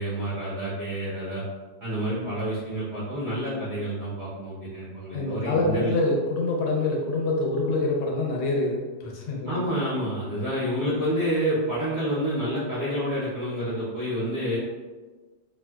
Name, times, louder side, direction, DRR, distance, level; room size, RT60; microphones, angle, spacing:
voice 1, 0.0-1.4 1.8-5.9 9.5-14.6, equal, 65° right, -10 dB, 0.6 m, -28 dB
voice 2, 5.1-9.7, left 2 dB, 85° left, -1 dB, 1.5 m, -26 dB
4.2 x 2.1 x 2.2 m, 1.3 s
omnidirectional pair, 2.2 m